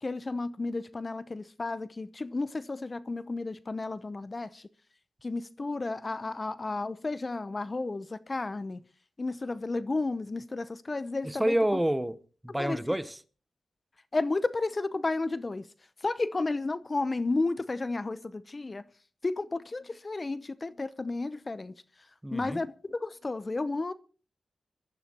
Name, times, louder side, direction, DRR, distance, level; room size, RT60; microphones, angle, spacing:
voice 1, 0.0-4.6 5.2-8.8 9.2-11.5 12.6-12.8 14.1-15.6 16.0-18.8 19.2-21.7 22.3-23.9, left 3 dB, 40° left, 0.7 m, -32 dB
voice 2, 11.2-12.2 12.4-13.2 22.2-22.6, right 1 dB, 10° right, 0.9 m, -28 dB
24.0 x 13.5 x 2.9 m
cardioid pair, 55°, 0 cm